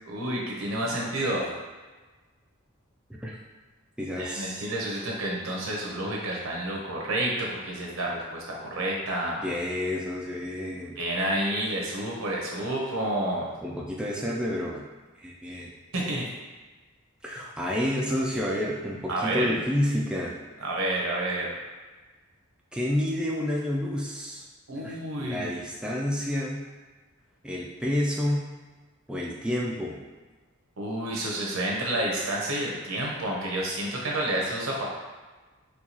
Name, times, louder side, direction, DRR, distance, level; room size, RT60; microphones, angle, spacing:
voice 1, 0.1-1.5 4.2-9.5 11.0-13.5 15.9-16.3 19.1-19.5 20.6-21.5 24.7-25.5 30.8-34.9, right 1 dB, 75° right, -2 dB, 0.9 m, -29 dB
voice 2, 4.0-4.6 9.4-11.0 13.6-14.8 15.2-15.7 17.2-20.4 22.7-24.4 24.7-26.6 27.4-28.4 29.1-30.0, left 1 dB, 5° right, -3 dB, 0.3 m, -29 dB
4.5 x 2.3 x 2.8 m, 1.3 s
head